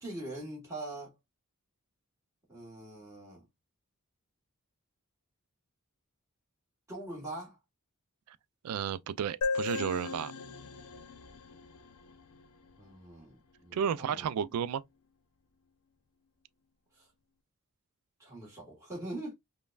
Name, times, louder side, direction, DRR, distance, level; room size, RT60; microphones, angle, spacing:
voice 1, 0.0-1.1 2.5-3.4 6.9-7.6 12.8-14.3 16.9-17.1 18.2-19.3, right 1 dB, 15° right, 1.4 m, -42 dB
voice 2, 8.6-10.3 13.7-14.8, right 8 dB, 85° right, 0.3 m, -32 dB
sound 1, 9.4-12.9, left 4 dB, 85° left, 0.6 m, -37 dB
5.2 x 2.2 x 2.3 m
head